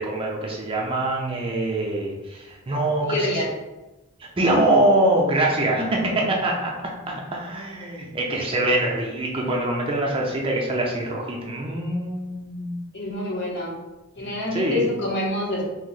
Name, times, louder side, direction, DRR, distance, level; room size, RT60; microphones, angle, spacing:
voice 1, 0.0-3.4 4.2-12.7 14.2-14.8, right 1 dB, 25° right, -1 dB, 0.4 m, -24 dB
voice 2, 3.0-3.5 5.8-6.3 12.9-13.7 14.1-15.6, left 1 dB, 55° left, -3 dB, 0.8 m, -27 dB
2.7 x 2.0 x 3.8 m, 1.1 s
head